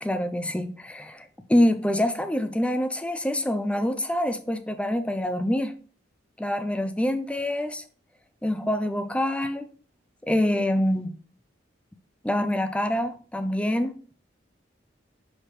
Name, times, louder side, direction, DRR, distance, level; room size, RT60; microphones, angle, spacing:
voice 1, 0.0-5.8 6.4-7.8 8.4-9.7 10.2-11.2 12.2-13.9, left 1 dB, 5° left, 0.5 m, -26 dB
5.8 x 5.1 x 3.2 m
head